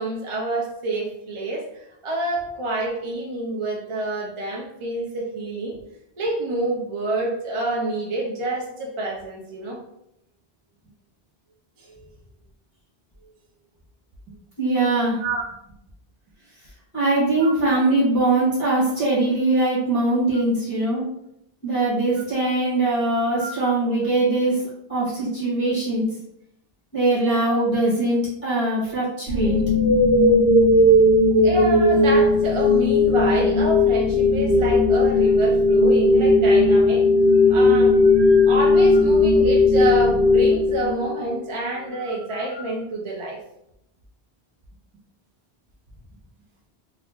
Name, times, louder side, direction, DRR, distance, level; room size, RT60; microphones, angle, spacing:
voice 1, 0.0-5.8 6.2-9.8 11.8-12.1 15.2-15.4 17.4-17.5 23.4-23.5 27.5-27.6 31.4-37.1 37.3-43.4, right 2 dB, 40° right, -2 dB, 0.5 m, -28 dB
voice 2, 14.6-15.2 16.9-21.0 21.6-24.6 24.9-26.1 26.9-29.6, right 2 dB, 10° right, -9 dB, 1.3 m, -21 dB
sound 1, 29.3-41.3, left 2 dB, 90° right, 1.1 m, -17 dB
3.0 x 2.3 x 3.4 m, 0.80 s
omnidirectional pair, 1.1 m